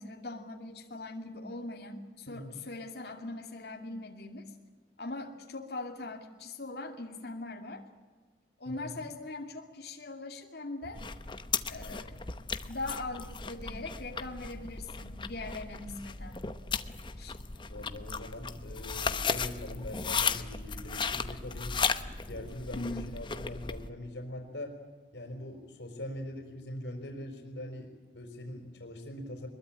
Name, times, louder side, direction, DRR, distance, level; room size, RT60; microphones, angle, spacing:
voice 1, 0.0-4.5 5.0-7.8 8.6-11.0 11.6-12.2 12.6-16.4 17.2-17.4 22.8-23.0, left 2 dB, 65° left, 1 dB, 2.5 m, -41 dB
voice 2, 2.3-2.6 8.6-9.1 17.7-21.7 22.3-24.8 25.1-29.5, left 1 dB, 85° left, 2 dB, 4.4 m, -42 dB
sound 1, 10.9-23.9, left 5 dB, 25° left, 0.9 m, -36 dB
23.5 x 22.0 x 8.9 m, 1.4 s
head